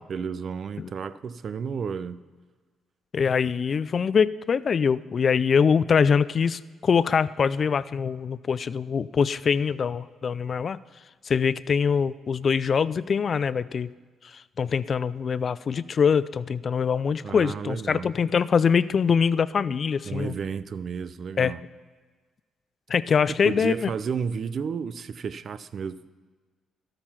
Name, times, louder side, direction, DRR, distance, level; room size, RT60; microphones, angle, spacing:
voice 1, 0.0-2.2 17.2-18.1 20.1-21.6 23.4-26.1, right 6 dB, 50° right, 15 dB, 0.5 m, -32 dB
voice 2, 3.1-10.8 11.2-13.9 14.2-20.3 21.4-21.5 22.9-23.9, left 6 dB, 45° left, 17 dB, 0.3 m, -23 dB
12.5 x 8.9 x 5.7 m, 1.4 s
cardioid pair, 90°, 0 cm